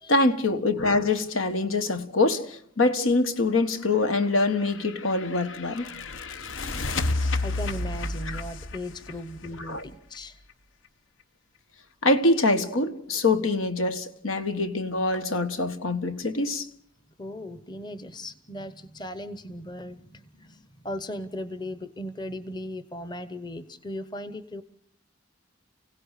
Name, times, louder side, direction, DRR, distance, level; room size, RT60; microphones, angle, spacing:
voice 1, 0.1-5.9 9.7-9.8 12.0-16.7, left 2 dB, 85° left, 1.5 m, -24 dB
sound 1, 4.4-10.2, left 2 dB, 70° left, 0.9 m, -31 dB
voice 2, 7.4-10.4 17.2-24.6, left 1 dB, 20° left, 0.9 m, -37 dB
30.0 x 16.5 x 6.6 m
head